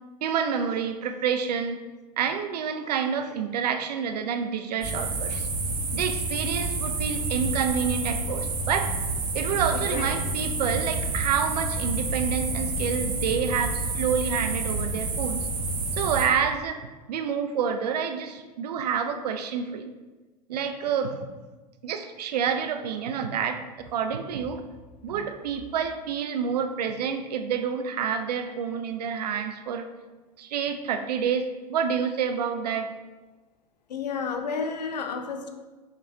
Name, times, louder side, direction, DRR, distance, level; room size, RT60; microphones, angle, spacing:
voice 1, 0.2-1.8 2.2-5.5 5.9-8.9 9.3-15.5 15.9-19.9 20.5-21.2 21.8-24.6 25.0-29.9 30.4-32.9, right 7 dB, 70° right, 8 dB, 0.5 m, -28 dB
sound 1, 4.8-16.3, right 3 dB, 40° right, 1.0 m, -29 dB
voice 2, 9.7-10.1 33.9-35.5, left 5 dB, 80° left, 6 dB, 0.5 m, -31 dB
5.7 x 3.3 x 2.7 m, 1.2 s
figure-of-eight pair, 85°, 21 cm